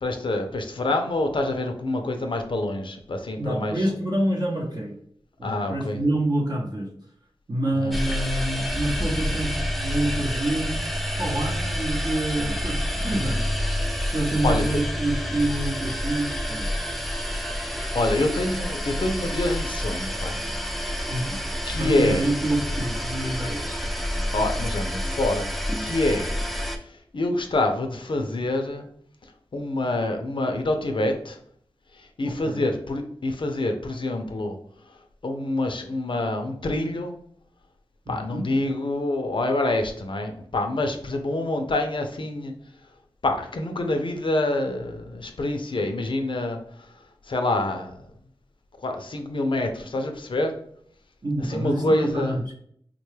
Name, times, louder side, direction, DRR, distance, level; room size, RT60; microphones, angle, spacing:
voice 1, 0.0-3.7 5.4-6.0 7.8-8.0 14.4-14.8 17.9-20.4 21.0-21.1 21.7-22.3 24.3-25.5 25.8-26.3 26.6-28.9 29.5-31.4 31.9-34.6 35.2-37.2 38.1-42.5 43.2-46.6 47.3-48.0 48.8-50.6 51.4-52.4, left 2 dB, 55° left, 5 dB, 0.5 m, -26 dB
voice 2, 3.4-4.9 5.4-6.9 7.5-10.8 11.2-13.4 14.1-16.7 21.1-21.4 21.8-23.8 32.2-32.7 38.1-38.5 51.2-52.5, right 1 dB, 45° right, -3 dB, 0.7 m, -27 dB
sound 1, 7.9-26.8, equal, ahead, 0.4 m, -28 dB
3.5 x 2.2 x 3.1 m, 0.64 s
cardioid pair, 55°, 10 cm